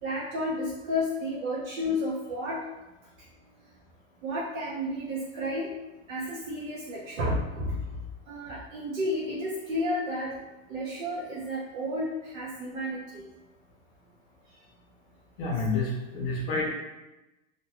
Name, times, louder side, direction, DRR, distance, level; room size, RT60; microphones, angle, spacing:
voice 1, 0.0-2.6 4.2-5.7 6.1-8.0 8.3-10.3 10.7-13.2, left 1 dB, 90° right, -6 dB, 0.8 m, -31 dB
voice 2, 15.4-16.7, left 3 dB, 45° left, -2 dB, 0.5 m, -29 dB
2.6 x 2.3 x 2.9 m, 1.0 s
supercardioid pair, 175°, 39 cm